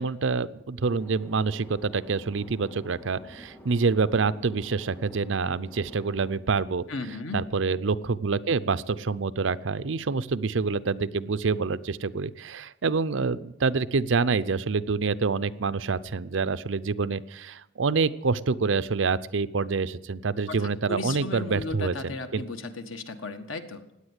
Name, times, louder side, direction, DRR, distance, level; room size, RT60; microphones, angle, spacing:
voice 1, 0.0-6.8 7.3-22.4, right 4 dB, 70° right, 15 dB, 0.6 m, -27 dB
sound 1, 0.8-6.3, left 1 dB, 10° left, 1.9 m, -49 dB
voice 2, 6.9-7.4 20.5-23.8, left 3 dB, 90° left, 7 dB, 1.5 m, -35 dB
16.5 x 9.9 x 8.2 m, 0.90 s
head